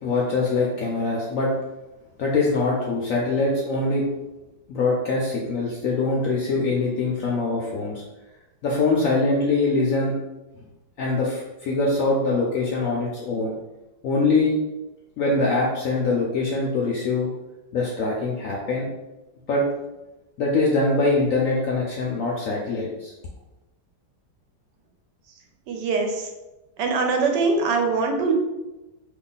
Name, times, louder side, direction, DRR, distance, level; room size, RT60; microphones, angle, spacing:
voice 1, 0.0-1.5 2.2-4.1 4.7-8.0 8.6-10.1 11.0-13.5 14.0-14.5 15.2-17.3 17.7-18.9 19.5-19.6 20.4-23.1, left 3 dB, 75° left, -3 dB, 0.8 m, -23 dB
voice 2, 25.7-26.3 26.8-28.3, right 4 dB, 80° right, 3 dB, 1.2 m, -22 dB
2.9 x 2.3 x 3.8 m, 1.0 s
omnidirectional pair, 1.9 m